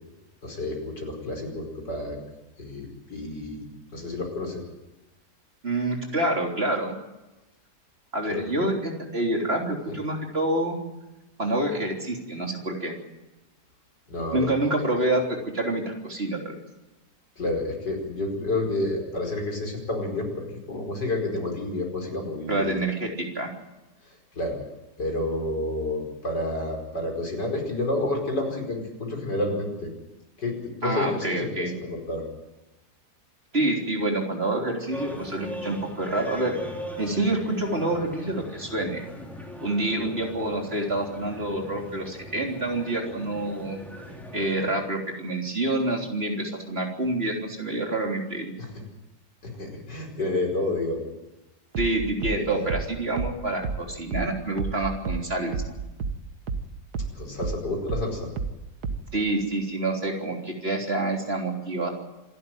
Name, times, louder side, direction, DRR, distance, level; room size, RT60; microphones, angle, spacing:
voice 1, 0.4-2.2 2.6-4.6 8.3-8.5 14.1-14.5 15.0-15.1 17.4-22.8 24.0-24.6 25.0-29.9 30.4-32.2 48.6-48.8 49.4-51.0 52.4-52.7 57.1-58.3, left 2 dB, 90° left, 1 dB, 5.6 m, -30 dB
voice 2, 5.6-7.0 8.1-10.8 11.4-12.9 14.3-16.5 22.5-23.5 30.8-31.7 33.5-36.5 37.0-39.0 39.6-43.8 44.3-48.5 51.8-55.8 59.1-61.9, right 2 dB, 35° right, 1 dB, 3.8 m, -27 dB
sound 1, 34.9-44.7, equal, ahead, 3.8 m, -40 dB
sound 2, 51.7-56.7 56.9-59.2, right 5 dB, 70° right, 1.9 m, -31 dB
27.0 x 12.5 x 9.2 m, 1.0 s
omnidirectional pair, 1.8 m